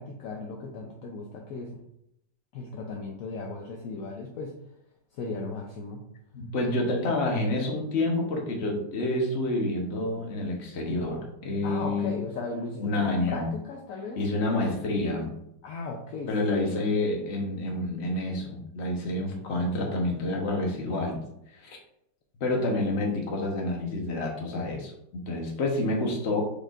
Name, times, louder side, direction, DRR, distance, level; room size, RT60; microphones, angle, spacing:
voice 1, 0.0-1.8 2.5-4.6 5.1-6.1 11.6-14.2 15.6-16.8, left 3 dB, 70° left, 0 dB, 0.8 m, -36 dB
voice 2, 6.3-12.2 12.8-13.5 14.2-15.3 16.3-21.2 21.5-21.8 22.4-26.4, left 2 dB, 45° left, 1 dB, 1.0 m, -28 dB
5.0 x 4.1 x 2.4 m, 0.78 s
omnidirectional pair, 1.9 m